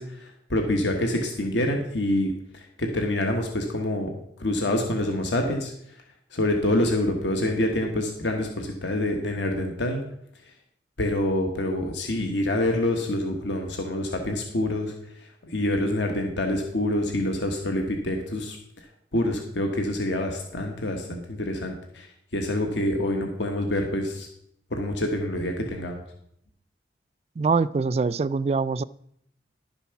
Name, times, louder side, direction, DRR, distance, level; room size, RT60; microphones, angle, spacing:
voice 1, 0.0-4.1 4.4-5.7 6.3-10.0 11.0-18.6 19.1-22.1 22.3-24.3 24.7-26.0, left 1 dB, 85° left, 1.3 m, -26 dB
voice 2, 27.4-28.8, right 4 dB, 35° right, 0.3 m, -24 dB
11.5 x 7.0 x 5.8 m
head